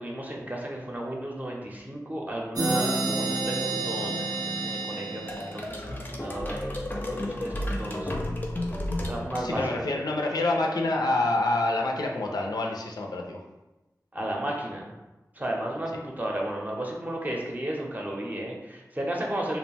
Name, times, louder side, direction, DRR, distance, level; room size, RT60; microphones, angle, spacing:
voice 1, 0.0-8.1 9.1-9.6 14.1-14.9 15.4-19.6, right 1 dB, 25° right, -1 dB, 0.6 m, -33 dB
sound 1, 2.6-6.1, right 3 dB, 65° right, 0.4 m, -30 dB
sound 2, 5.3-10.1, left 1 dB, 30° left, 0.5 m, -32 dB
voice 2, 9.3-13.4, left 2 dB, 85° left, 0 dB, 0.4 m, -27 dB
2.5 x 2.1 x 3.2 m, 1.0 s
wide cardioid pair, 45°, 7 cm